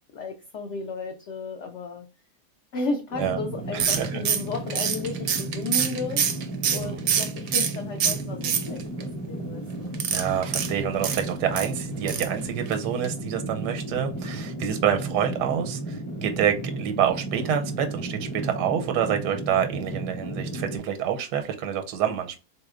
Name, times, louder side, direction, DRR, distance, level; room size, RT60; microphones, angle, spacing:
voice 1, 0.1-2.1 2.7-6.2 6.7-9.9, left 3 dB, 70° left, 0.6 m, -34 dB
sound 1, 3.1-20.8, right 2 dB, 10° left, 0.3 m, -34 dB
voice 2, 3.7-4.2 6.8-7.0 10.1-22.4, right 9 dB, 85° right, 1.2 m, -27 dB
sound 2, 3.8-7.8 8.0-9.0 9.9-11.7 12.1-12.4 12.7-12.8 13.0-13.1, right 8 dB, 70° right, 0.7 m, -25 dB
4.0 x 2.7 x 2.3 m
omnidirectional pair, 1.7 m